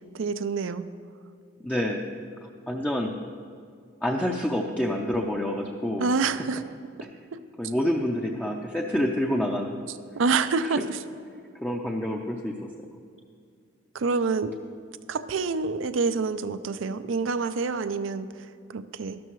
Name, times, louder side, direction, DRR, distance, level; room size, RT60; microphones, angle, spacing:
voice 1, 0.1-0.9 6.0-6.6 7.3-7.4 10.2-11.0 13.9-14.5 15.1-19.2, right 4 dB, 85° right, 12 dB, 0.5 m, -27 dB
voice 2, 1.6-3.1 4.0-6.1 7.6-9.8 10.6-10.8 11.6-12.7, left 1 dB, 5° left, 0 dB, 0.5 m, -28 dB
12.5 x 12.0 x 3.1 m, 2.3 s
head